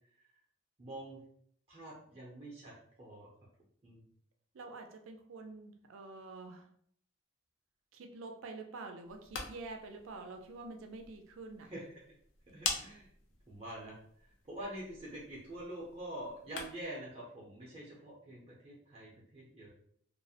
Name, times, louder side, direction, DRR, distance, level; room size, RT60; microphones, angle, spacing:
voice 1, 0.8-1.2 1.7-3.3 3.8-4.0 11.6-11.9 12.5-13.1 13.5-19.7, right 1 dB, 30° right, -4 dB, 0.5 m, -46 dB
voice 2, 4.5-6.7 7.9-11.7, right 3 dB, 85° right, 5 dB, 0.4 m, -47 dB
sound 1, 9.0-17.0, left 4 dB, 70° left, 0.4 m, -45 dB
2.4 x 2.0 x 2.6 m, 0.63 s
head